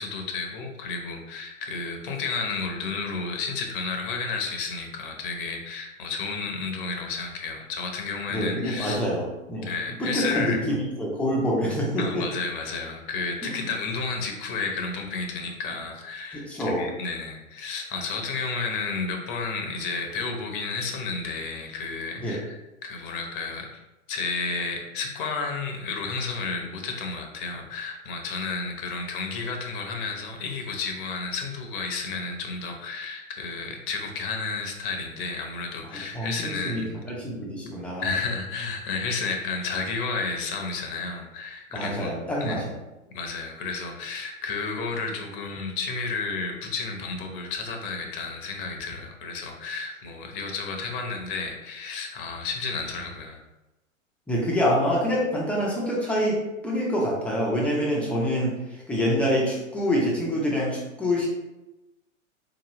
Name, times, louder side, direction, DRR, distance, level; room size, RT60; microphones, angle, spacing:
voice 1, 0.0-9.0 9.6-10.6 12.0-23.8 24.1-36.9 38.0-42.1 42.4-42.6 43.1-53.4, left 4 dB, 40° left, 2 dB, 0.9 m, -32 dB
voice 2, 8.3-9.7 10.0-12.2 13.4-13.6 16.3-16.9 22.2-22.4 35.9-38.1 41.7-42.7 54.3-56.4 56.6-58.5 58.9-61.3, equal, 5° left, -5 dB, 0.7 m, -26 dB
4.4 x 2.9 x 3.0 m, 1.0 s
hypercardioid pair, 120°, 40 cm